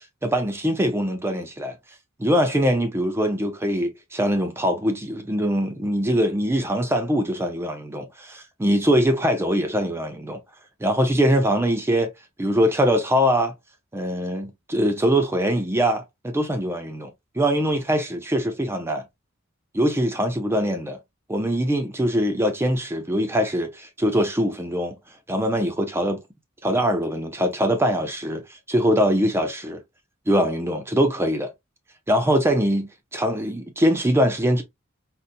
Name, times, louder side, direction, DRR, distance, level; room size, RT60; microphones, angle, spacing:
voice 1, 0.0-1.7 2.2-10.4 10.8-12.1 12.4-13.5 13.9-17.1 17.4-19.0 19.7-21.0 21.3-25.0 25.3-26.2 26.6-29.8 30.3-31.5 32.1-34.6, equal, 10° right, 0.4 m, -22 dB
4.0 x 2.1 x 2.5 m
head